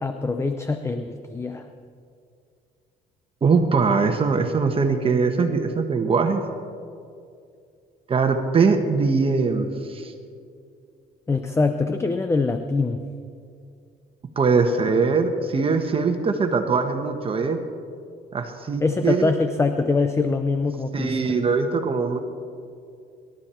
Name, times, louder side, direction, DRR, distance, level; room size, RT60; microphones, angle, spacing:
voice 1, 0.0-1.6 11.3-13.0 18.8-21.2, left 3 dB, 15° left, 8 dB, 0.7 m, -23 dB
voice 2, 3.4-6.4 8.1-10.1 14.3-17.6 18.3-19.3 20.9-22.2, right 4 dB, 35° right, 5 dB, 1.3 m, -21 dB
25.0 x 12.0 x 4.4 m, 2.4 s
cardioid pair, 110°, 17 cm